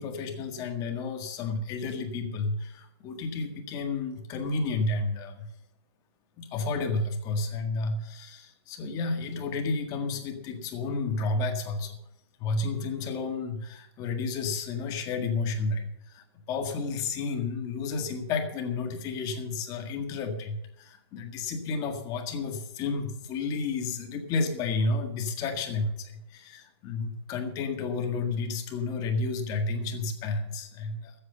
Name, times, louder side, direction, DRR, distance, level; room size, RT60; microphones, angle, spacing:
voice 1, 0.0-5.5 6.4-12.0 12.4-31.2, left 3 dB, 25° left, 5 dB, 1.7 m, -31 dB
14.0 x 7.9 x 6.8 m, 0.82 s
hypercardioid pair, 160°, 14 cm